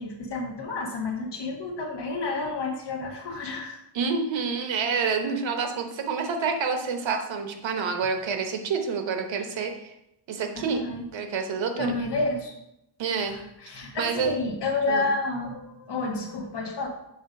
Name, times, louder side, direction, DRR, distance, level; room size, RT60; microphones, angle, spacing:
voice 1, 0.0-3.8 10.5-11.0 11.8-12.5 13.3-16.9, left 3 dB, 65° left, 1 dB, 1.5 m, -30 dB
voice 2, 3.9-9.9 10.3-10.8 11.1-11.9 13.0-13.4 13.9-14.3 14.9-15.1, right 5 dB, 90° right, 5 dB, 1.0 m, -28 dB
7.1 x 3.4 x 5.2 m, 0.83 s
wide cardioid pair, 155°, 44 cm